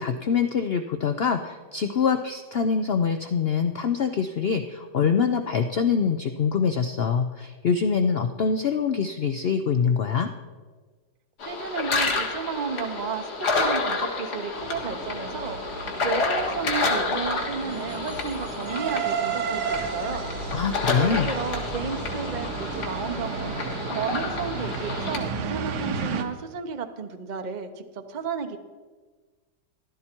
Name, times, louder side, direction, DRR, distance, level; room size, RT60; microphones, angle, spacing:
voice 1, 0.0-10.3 20.5-21.3, left 6 dB, 85° left, 8 dB, 0.5 m, -24 dB
sound 1, 11.4-25.2, left 3 dB, 70° left, 2.2 m, -29 dB
voice 2, 11.4-20.2 21.0-28.6, right 6 dB, 45° right, 7 dB, 0.5 m, -33 dB
sound 2, 14.5-26.2, right 5 dB, 75° right, 1.5 m, -33 dB
14.5 x 12.5 x 4.4 m, 1.4 s
omnidirectional pair, 1.8 m